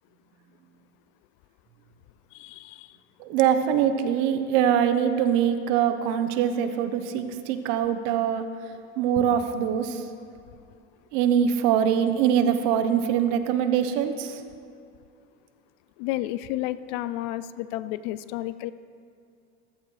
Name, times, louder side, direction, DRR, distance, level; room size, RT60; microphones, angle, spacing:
voice 1, 2.3-3.0 16.0-18.7, left 15 dB, 55° left, 15 dB, 0.4 m, -32 dB
voice 2, 3.2-8.4 9.0-10.0 11.1-14.4, right 9 dB, 60° right, 9 dB, 1.0 m, -23 dB
15.0 x 13.5 x 3.2 m, 2.4 s
cardioid pair, 160°, 31 cm